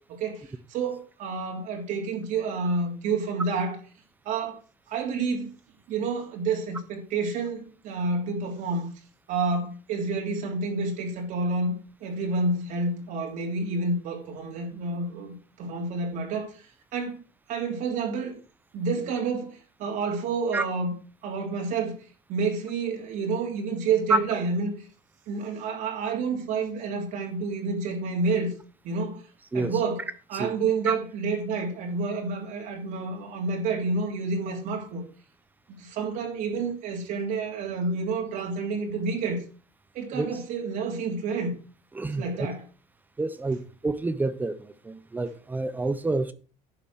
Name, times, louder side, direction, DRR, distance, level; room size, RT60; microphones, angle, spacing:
voice 1, 0.1-3.8 4.2-4.6 4.9-5.5 5.9-8.9 9.3-17.2 17.5-18.4 18.7-20.9 21.2-22.0 22.3-24.8 25.3-28.5 28.8-29.2 29.5-30.0 30.3-35.0 35.7-39.4 39.9-41.5 42.1-42.6, right 4 dB, 50° right, 3.2 m, -29 dB
voice 2, 41.9-42.5 43.2-46.3, right 2 dB, 10° right, 0.7 m, -28 dB
11.0 x 6.9 x 6.3 m
cardioid pair, 175°, 17 cm